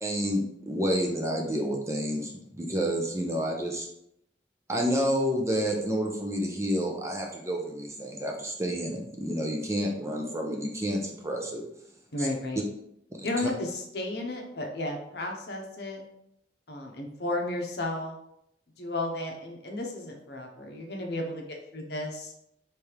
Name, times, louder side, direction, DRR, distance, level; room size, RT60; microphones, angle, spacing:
voice 1, 0.0-3.9 4.7-11.6 12.2-12.3, equal, 15° right, 0 dB, 0.6 m, -29 dB
voice 2, 12.1-12.6 13.2-16.0 16.7-18.1 18.8-22.3, left 2 dB, 65° left, 1 dB, 0.9 m, -33 dB
3.3 x 3.3 x 4.7 m, 0.76 s
head